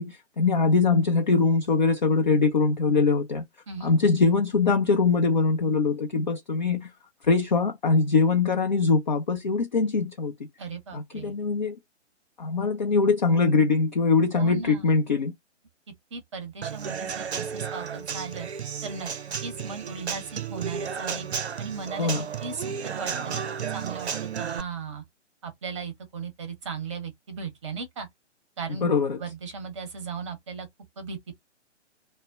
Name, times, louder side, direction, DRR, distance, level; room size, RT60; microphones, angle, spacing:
voice 1, 0.0-3.4 3.8-6.9 7.2-10.3 10.9-11.8 12.4-15.3 22.0-22.2 28.8-29.2, left 4 dB, 40° left, 0.4 m, -22 dB
voice 2, 3.7-4.0 10.6-11.3 14.3-15.0 16.1-18.5 18.8-19.1 19.4-21.3 21.6-22.1 22.4-23.4 23.7-24.1 24.4-25.0 25.4-28.1 28.6-28.9 29.2-30.7 31.0-31.4, right 5 dB, 25° right, 0.7 m, -37 dB
Human voice / Acoustic guitar / Drum, 16.6-24.6, right 7 dB, 65° right, 0.5 m, -33 dB
2.1 x 2.1 x 3.4 m
figure-of-eight pair, 135°, 36 cm